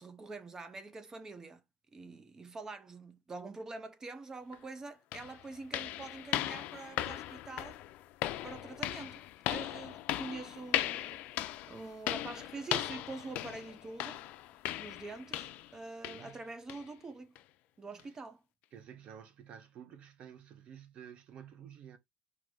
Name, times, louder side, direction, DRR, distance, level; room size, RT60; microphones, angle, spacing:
voice 1, 0.0-1.6 1.9-7.8 8.4-14.2 14.8-17.4 17.8-18.4, right 3 dB, 20° right, 0.7 m, -45 dB
sound 1, 4.5-4.6 5.1-15.8 16.0-16.3 16.7-16.9 17.4-17.5 18.0-18.1, left 14 dB, 65° left, 0.5 m, -38 dB
voice 2, 16.0-16.4 18.7-22.0, right 8 dB, 45° right, 1.0 m, -51 dB
4.9 x 2.8 x 3.7 m
cardioid pair, 140°, 3 cm